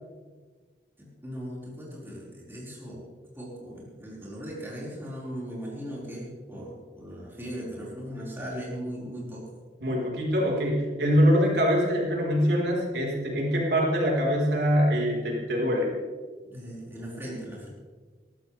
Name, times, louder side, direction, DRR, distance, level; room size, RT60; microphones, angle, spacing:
voice 1, 1.0-3.1 3.4-9.5 16.4-17.7, equal, 15° right, -6 dB, 4.8 m, -38 dB
voice 2, 9.8-15.9, equal, 75° right, -2 dB, 4.2 m, -24 dB
22.0 x 14.5 x 3.4 m, 1.5 s
head